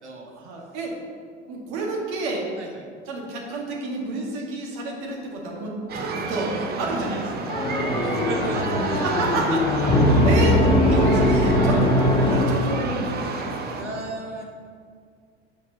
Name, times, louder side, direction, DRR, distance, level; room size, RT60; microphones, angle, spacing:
voice 1, 0.3-0.9 1.5-2.5 3.1-7.5 8.0-8.3 8.8-10.6 10.9-13.4, right 3 dB, 50° right, -2 dB, 2.1 m, -30 dB
sound 1, 5.9-13.8, right 3 dB, 30° right, 1.0 m, -31 dB
sound 2, 7.5-13.1, left 1 dB, 15° left, 1.6 m, -20 dB
voice 2, 8.0-9.3 13.8-14.4, right 2 dB, 75° right, 0 dB, 1.4 m, -35 dB
6.3 x 5.3 x 6.8 m, 2.1 s
figure-of-eight pair, 75°, 34 cm